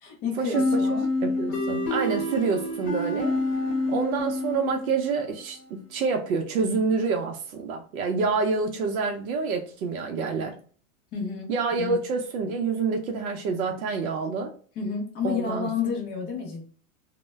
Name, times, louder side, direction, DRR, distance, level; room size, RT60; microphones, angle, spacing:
voice 1, 0.0-1.1 1.5-1.6 11.1-12.0 14.8-16.6, left 6 dB, 20° left, 1 dB, 0.5 m, -31 dB
sound 1, 0.5-5.2, left 2 dB, 70° left, 1.0 m, -27 dB
voice 2, 1.2-3.3 3.9-10.5 11.5-14.5 15.2-15.7, right 4 dB, 75° right, 3 dB, 0.6 m, -27 dB
2.1 x 2.0 x 3.2 m, 0.43 s
supercardioid pair, 145°, 43 cm